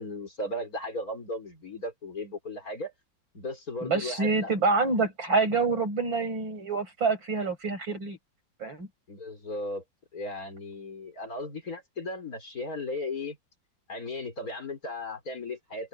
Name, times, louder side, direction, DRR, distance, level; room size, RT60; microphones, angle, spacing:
voice 1, 0.0-2.9 3.3-4.5 9.1-9.8 10.1-13.4 13.9-15.9, left 2 dB, 45° left, 4.3 m, -36 dB
voice 2, 3.8-8.2 8.6-8.9, right 4 dB, 75° right, 7.2 m, -27 dB
open air
omnidirectional pair, 2.1 m